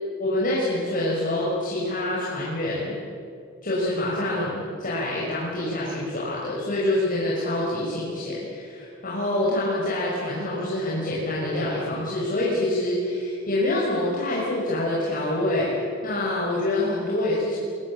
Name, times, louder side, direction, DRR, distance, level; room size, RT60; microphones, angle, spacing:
voice 1, 0.2-3.0 3.6-15.7 16.0-17.6, left 1 dB, 45° left, -6 dB, 5.8 m, -26 dB
23.0 x 21.0 x 8.8 m, 2.4 s
head